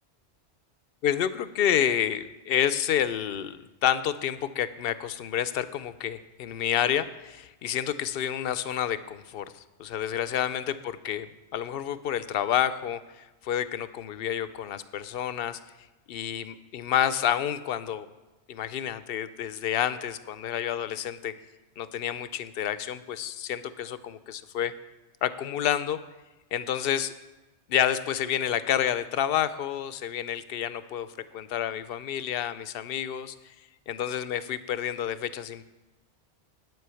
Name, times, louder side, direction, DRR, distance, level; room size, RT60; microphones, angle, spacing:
voice 1, 1.0-11.3 11.5-15.6 16.1-18.1 18.5-21.3 21.8-24.7 25.2-26.0 26.5-27.1 27.7-31.1 31.3-33.5 33.9-35.6, left 10 dB, 65° left, 14 dB, 0.7 m, -29 dB
9.4 x 7.8 x 6.9 m, 1.1 s
omnidirectional pair, 1.1 m